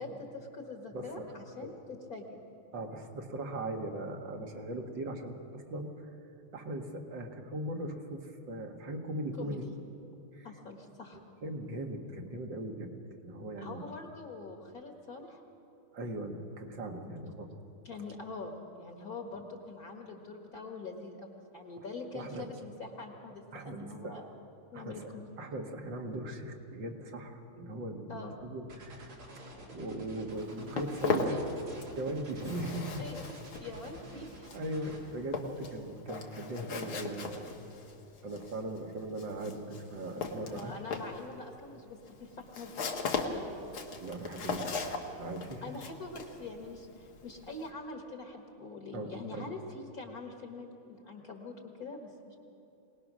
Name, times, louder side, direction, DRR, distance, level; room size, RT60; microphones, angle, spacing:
voice 1, 0.0-2.3 9.4-9.7 10.4-11.2 13.6-15.4 17.0-17.2 17.8-24.3 24.7-25.3 28.1-28.4 31.0-31.4 33.0-34.6 37.5-37.6 40.5-42.7 43.0-43.5 45.6-52.4, left 3 dB, 45° left, 3 dB, 1.9 m, -44 dB
voice 2, 0.9-1.3 1.6-1.8 2.7-6.1 6.5-9.8 10.3-10.6 11.1-13.9 15.9-17.5 21.8-21.9 22.1-22.6 23.5-24.2 24.7-29.4 29.7-31.4 32.0-33.1 34.5-37.4 38.2-40.8 44.0-45.8 48.9-49.6, right 1 dB, 60° right, 3 dB, 2.2 m, -39 dB
sound 1, 28.7-35.0, right 1 dB, 75° right, 3.9 m, -49 dB
Walk footsteps, 30.3-32.0 32.3-47.7, left 4 dB, 75° left, 2.3 m, -38 dB
23.0 x 19.0 x 6.2 m, 3.0 s
omnidirectional pair, 2.4 m